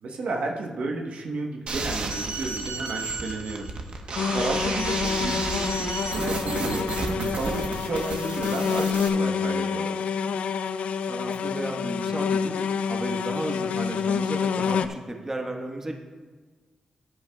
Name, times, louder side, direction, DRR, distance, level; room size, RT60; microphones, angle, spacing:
voice 1, 0.0-3.7 4.3-6.9 7.2-10.0, right 3 dB, 80° right, 1 dB, 1.1 m, -32 dB
sound 1, 1.7-9.1, right 3 dB, 55° right, 1.0 m, -32 dB
sound 2, 4.2-14.9, left 6 dB, 85° left, 0.3 m, -27 dB
voice 2, 11.0-12.6 12.9-15.9, right 1 dB, 20° right, 2 dB, 1.2 m, -33 dB
15.0 x 9.7 x 2.3 m, 1.4 s
wide cardioid pair, 100°, 2 cm